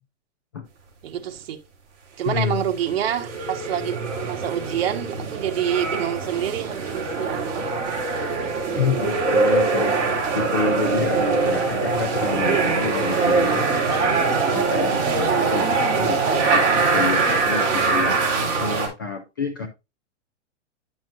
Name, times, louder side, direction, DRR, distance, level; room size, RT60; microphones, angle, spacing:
voice 1, 1.0-1.6 2.2-4.0 4.2-7.7, right 10 dB, 55° right, 1.4 m, -27 dB
voice 2, 2.2-2.6 8.8-19.7, left 5 dB, 20° left, 0.4 m, -29 dB
sound 1, 2.8-18.9, right 4 dB, 20° right, 2.7 m, -22 dB
10.0 x 6.0 x 2.5 m
hypercardioid pair, 170°, 36 cm